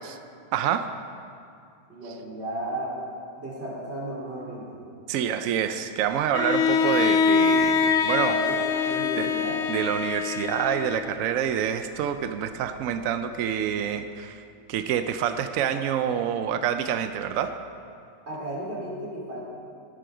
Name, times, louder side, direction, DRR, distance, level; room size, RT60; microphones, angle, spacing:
voice 1, 0.5-0.9 5.1-8.3 9.2-9.3 9.7-14.4 14.7-17.5, right 9 dB, 80° right, 9 dB, 0.7 m, -27 dB
voice 2, 1.9-3.1 3.4-4.8 8.2-9.7 18.3-19.4, right 1 dB, 35° right, -6 dB, 3.5 m, -34 dB
Bowed string instrument, 6.3-11.4, left 5 dB, 90° left, 0.6 m, -24 dB
17.5 x 7.7 x 4.9 m, 2.4 s
omnidirectional pair, 2.0 m